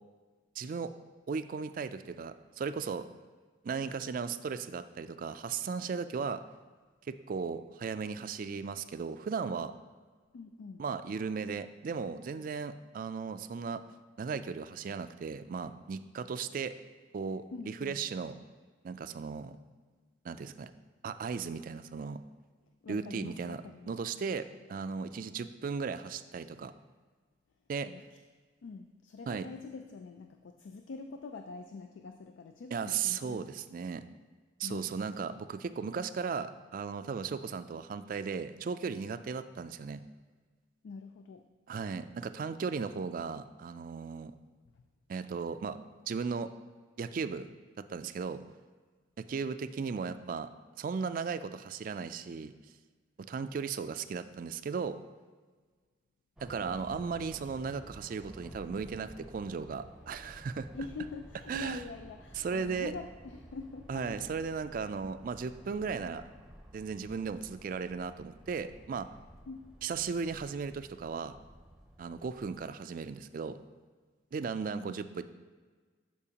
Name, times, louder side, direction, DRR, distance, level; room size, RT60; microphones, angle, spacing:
voice 1, 0.6-0.9 1.3-3.1 3.6-6.4 7.1-9.7 10.8-13.8 14.2-16.7 17.1-18.3 18.8-19.6 20.2-20.7 21.0-22.2 22.9-23.6 23.9-26.7 27.7-27.9 29.3-29.5 32.7-34.0 34.6-40.0 41.7-44.3 45.1-45.8 46.1-46.5 47.0-47.5 47.8-48.4 49.2-50.5 50.8-52.5 53.2-55.0 56.4-60.7 61.5-61.8 62.4-62.9 63.9-66.2 66.7-69.1 69.8-71.4 72.0-73.6 74.3-75.2, right 5 dB, 50° right, 11 dB, 0.3 m, -36 dB
voice 2, 10.3-10.8 17.5-18.0 22.8-23.9 27.9-28.0 28.6-33.4 34.6-34.9 40.8-41.4 44.7-44.8 60.7-64.4 69.5-69.7 74.8-75.0, left 4 dB, 85° left, 6 dB, 0.4 m, -45 dB
sound 1, 56.4-72.6, equal, 5° right, 0.6 m, -53 dB
12.0 x 4.5 x 2.9 m, 1.4 s
head